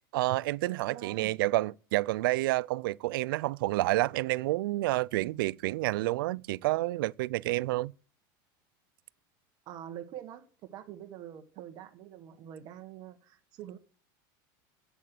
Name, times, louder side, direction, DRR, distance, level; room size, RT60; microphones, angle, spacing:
voice 1, 0.1-7.9, right 18 dB, 90° right, 0.4 m, -29 dB
voice 2, 0.9-1.3 5.2-5.4 9.6-10.5 10.7-13.8, right 10 dB, 35° right, 1.5 m, -45 dB
8.6 x 8.4 x 7.7 m
supercardioid pair, 165°, 11 cm